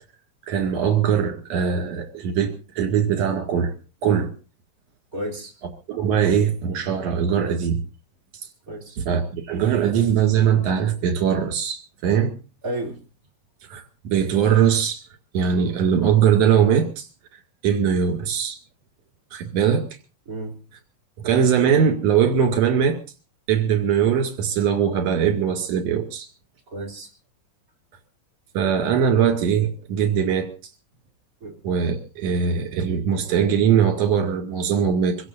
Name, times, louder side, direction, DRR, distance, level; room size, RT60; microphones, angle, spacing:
voice 1, 0.5-3.7 4.0-4.3 5.9-7.8 9.0-12.3 13.7-15.0 15.3-17.1 17.6-18.6 19.3-19.8 21.2-23.0 23.5-26.3 28.5-30.5 31.6-35.2, right 8 dB, 65° right, 6 dB, 3.4 m, -21 dB
voice 2, 5.1-5.5 8.7-9.0 12.6-13.0 20.3-20.6 26.7-27.1 31.4-31.6, right 1 dB, 30° right, 2 dB, 3.2 m, -32 dB
26.0 x 16.0 x 2.6 m, 0.32 s
omnidirectional pair, 3.3 m